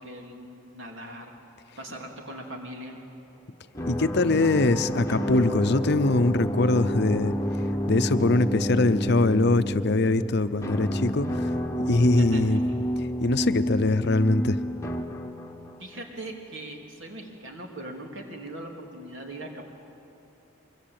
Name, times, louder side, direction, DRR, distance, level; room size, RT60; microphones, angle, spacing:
voice 1, 0.0-1.3 1.8-3.0 12.2-12.6 15.8-19.6, right 1 dB, 60° right, 2 dB, 3.3 m, -40 dB
sound 1, 3.7-15.8, equal, 15° left, 1.2 m, -29 dB
voice 2, 3.9-7.3 7.9-11.5 11.8-12.6 13.0-14.6, left 2 dB, 50° left, 11 dB, 0.7 m, -23 dB
23.5 x 22.5 x 8.9 m, 2.6 s
head